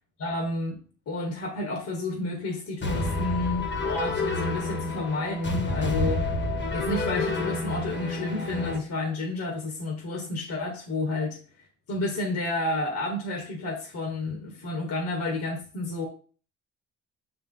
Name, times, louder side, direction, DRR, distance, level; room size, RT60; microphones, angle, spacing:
voice 1, 0.2-0.8 1.1-6.2 6.7-11.4 11.9-16.1, left 2 dB, 60° left, 0 dB, 1.5 m, -30 dB
sound 1, 2.8-8.8, left 2 dB, 40° left, 1.4 m, -29 dB
6.4 x 4.1 x 3.8 m, 0.41 s
cardioid pair, 90°, 30 cm